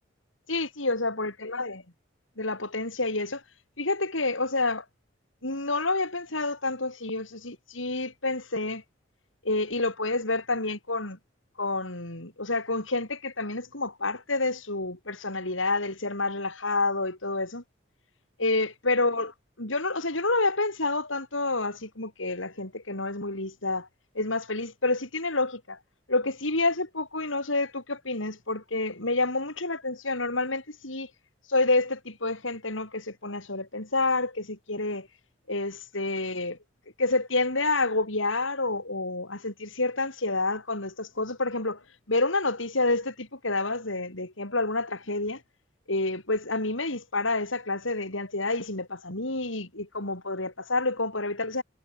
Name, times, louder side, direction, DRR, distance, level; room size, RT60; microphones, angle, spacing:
voice 1, 0.5-1.8 2.4-3.4 3.8-4.8 5.4-8.8 9.4-11.2 11.6-17.6 18.4-23.9 24.2-25.8 26.1-31.1 31.5-35.1 35.5-36.6 37.0-45.4 45.9-51.6, left 2 dB, 85° left, 7.1 m, -28 dB
head